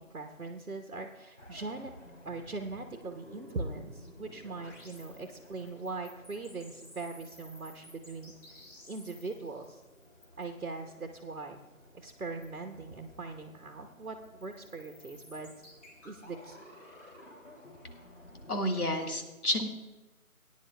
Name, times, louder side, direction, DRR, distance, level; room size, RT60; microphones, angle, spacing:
voice 1, 0.0-1.9 2.2-8.3 8.9-9.8 10.4-11.6 11.9-15.5 16.0-16.6, right 3 dB, 85° right, 4 dB, 1.1 m, -41 dB
sound 1, 1.4-19.0, left 1 dB, 55° left, 3.0 m, -54 dB
voice 2, 18.5-19.7, left 1 dB, 85° left, 4 dB, 1.8 m, -30 dB
18.5 x 10.0 x 2.2 m, 1.2 s
figure-of-eight pair, 170°, 44 cm